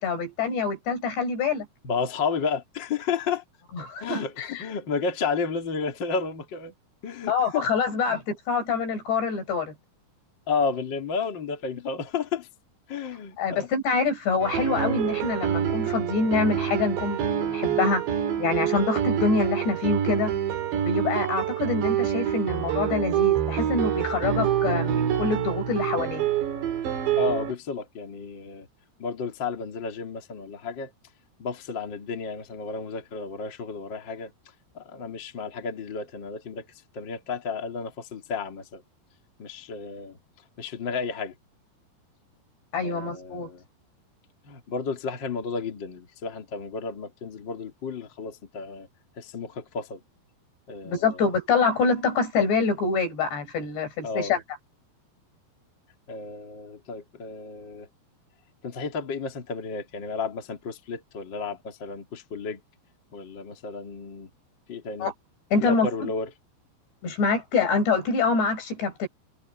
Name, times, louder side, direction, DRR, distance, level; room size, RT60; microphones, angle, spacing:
voice 1, 0.0-1.7 3.7-4.7 7.3-9.7 13.4-18.0 18.4-20.3 20.7-26.2 42.7-43.5 50.9-54.4 65.0-65.1 65.5-66.1 67.0-69.1, left 4 dB, 75° left, 7.5 m, -26 dB
voice 2, 1.8-3.4 4.0-6.7 7.0-7.7 8.1-8.2 10.5-12.5 12.9-13.7 27.2-28.7 29.0-30.9 31.4-34.3 34.7-36.6 36.9-38.8 39.4-40.2 40.6-41.3 42.8-43.6 44.4-48.9 49.2-50.0 50.7-51.3 54.0-54.4 56.1-57.9 58.6-62.6 63.1-64.3 64.7-65.1 65.6-66.3, left 5 dB, 30° left, 3.0 m, -32 dB
sound 1, 14.4-27.5, right 10 dB, 80° right, 5.0 m, -26 dB
omnidirectional pair, 4.9 m